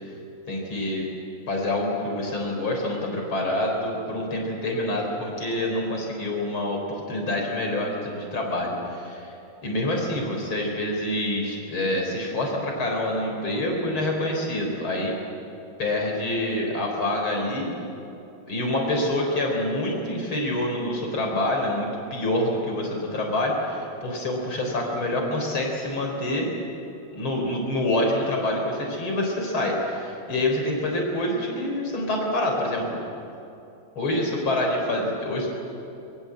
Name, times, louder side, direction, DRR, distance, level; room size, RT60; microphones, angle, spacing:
voice 1, 0.5-1.0 1.5-9.3 9.6-15.1 15.8-17.7 18.5-26.5 27.1-33.0 34.0-35.5, left 1 dB, 85° left, 1 dB, 4.7 m, -26 dB
24.5 x 22.5 x 7.7 m, 2.8 s
omnidirectional pair, 2.2 m